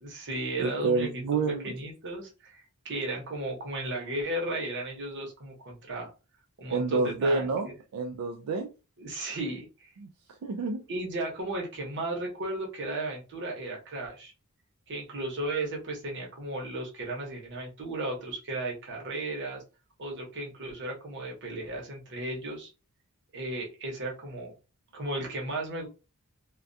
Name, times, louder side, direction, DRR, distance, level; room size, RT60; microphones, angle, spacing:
voice 1, 0.0-1.1 1.6-6.1 6.6-7.7 9.0-9.9 10.9-14.3 14.9-19.6 20.0-22.7 23.3-24.5 24.9-25.9, right 2 dB, 55° right, -1 dB, 0.9 m, -35 dB
voice 2, 0.6-1.7 6.7-8.7 10.0-10.1 10.4-10.8, right 3 dB, 80° right, 3 dB, 0.4 m, -28 dB
2.3 x 2.2 x 2.6 m, 0.30 s
head